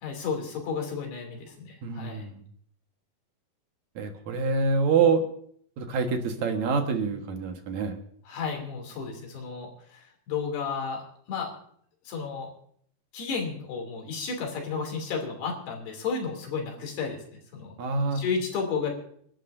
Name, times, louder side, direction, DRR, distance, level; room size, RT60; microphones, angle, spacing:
voice 1, 0.0-2.2 8.2-11.0 11.3-11.5 12.0-12.5 13.1-17.2 17.5-17.7 18.1-18.9, left 5 dB, 80° left, 1 dB, 4.9 m, -32 dB
voice 2, 1.8-2.4 4.0-5.2 5.8-8.0 17.8-18.2, right 5 dB, 60° right, 4 dB, 2.3 m, -26 dB
28.5 x 11.5 x 2.6 m, 0.63 s
omnidirectional pair, 4.5 m